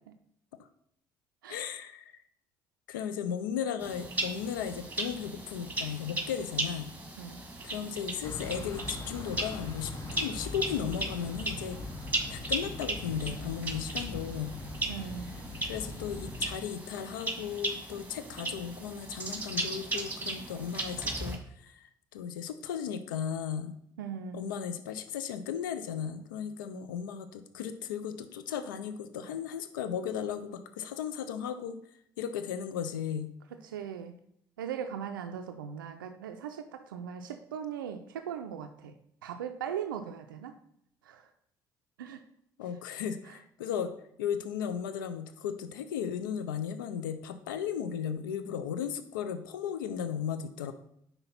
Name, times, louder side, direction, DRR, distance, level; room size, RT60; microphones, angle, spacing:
voice 1, 1.5-2.1 2.9-6.9 7.6-11.8 12.3-14.6 15.6-23.7 24.3-31.8 32.2-33.3 42.6-43.9 44.2-50.7, left 8 dB, 85° left, 11 dB, 0.4 m, -36 dB
sound 1, 3.8-21.4, right 2 dB, 15° right, 1.5 m, -37 dB
sound 2, 8.2-16.6, left 2 dB, 35° left, 1.1 m, -41 dB
voice 2, 14.9-15.3 24.0-24.5 33.5-34.1 34.6-38.9 39.2-40.6 41.0-41.3 42.0-42.2 43.3-43.4, right 8 dB, 90° right, 7 dB, 0.4 m, -39 dB
5.8 x 4.0 x 5.6 m, 0.71 s
hypercardioid pair, 50°, 11 cm